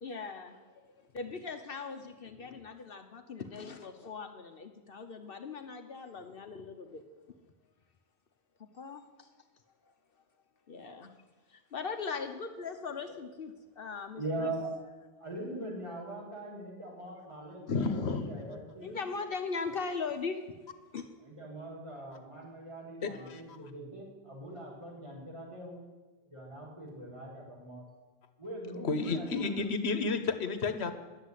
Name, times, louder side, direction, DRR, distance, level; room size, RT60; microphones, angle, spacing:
voice 1, 0.0-7.0 8.7-9.3 9.9-10.0 10.7-11.1 11.5-14.5 18.8-20.4 20.9-21.1, left 5 dB, 60° left, 6 dB, 1.0 m, -40 dB
voice 2, 14.2-14.7 15.2-19.0 21.2-25.8 26.3-27.8 28.4-29.6, right 1 dB, 30° right, -5 dB, 5.0 m, -41 dB
voice 3, 17.7-18.6 23.0-23.6 28.8-30.9, left 4 dB, 85° left, 9 dB, 1.2 m, -32 dB
11.0 x 8.0 x 9.8 m, 1.3 s
omnidirectional pair, 1.1 m